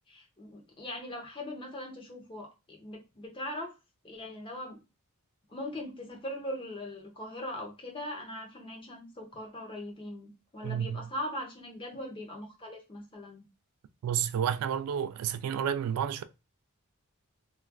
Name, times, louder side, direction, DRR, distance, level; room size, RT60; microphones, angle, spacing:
voice 1, 0.1-3.7 4.0-4.8 5.5-13.4, left 1 dB, 25° left, 0.8 m, -40 dB
voice 2, 10.6-11.1 14.0-16.2, right 8 dB, 80° right, 0.3 m, -30 dB
3.1 x 2.4 x 2.2 m
head